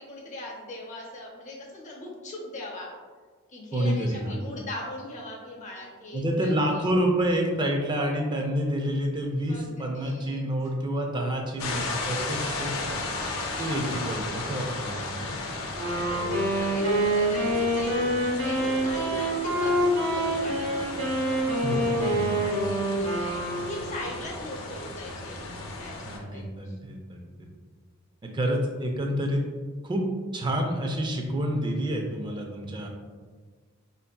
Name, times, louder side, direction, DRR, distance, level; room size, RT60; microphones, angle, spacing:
voice 1, 0.0-2.9 3.5-6.9 9.5-10.5 16.0-18.0 18.4-21.4 21.9-26.8, left 1 dB, 35° left, -2 dB, 0.7 m, -40 dB
voice 2, 3.7-4.4 6.1-12.7 13.6-15.3 21.4-22.7 26.1-27.3 28.2-29.5 29.8-30.0 30.3-32.9, equal, 20° right, 1 dB, 0.4 m, -28 dB
sound 1, 11.6-26.2, left 2 dB, 70° left, 0.5 m, -35 dB
Wind instrument woodwind instrument, 15.7-24.1, right 1 dB, 85° right, 1.3 m, -26 dB
4.5 x 2.6 x 2.2 m, 1.5 s
head